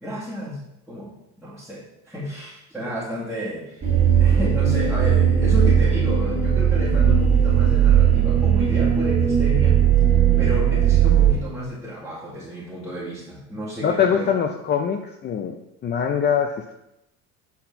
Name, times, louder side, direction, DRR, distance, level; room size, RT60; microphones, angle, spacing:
voice 1, 0.0-0.6 0.9-1.1 1.4-3.9 4.2-9.8 10.4-14.3, equal, ahead, -10 dB, 2.3 m, -31 dB
sound 1, 3.8-11.3, right 8 dB, 30° right, 2.3 m, -18 dB
voice 2, 13.8-15.6 15.8-16.7, left 7 dB, 35° left, 5 dB, 0.6 m, -23 dB
8.3 x 4.4 x 5.5 m, 0.86 s
cardioid pair, 125°, 30 cm